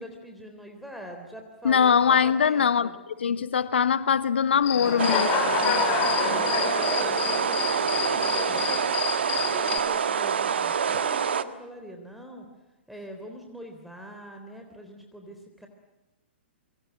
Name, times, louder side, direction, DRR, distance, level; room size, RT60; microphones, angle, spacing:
voice 1, 0.0-2.9 4.7-8.9 9.2-12.5 12.9-15.7, equal, ahead, 3.6 m, -43 dB
voice 2, 1.6-2.9 3.2-5.3, left 7 dB, 70° left, 1.4 m, -22 dB
Human voice / Cricket, 4.6-9.8, left 9 dB, 35° left, 3.4 m, -29 dB
sound 1, 5.0-11.4, right 7 dB, 70° right, 1.5 m, -26 dB
27.5 x 24.0 x 7.8 m
figure-of-eight pair, 115°, 6 cm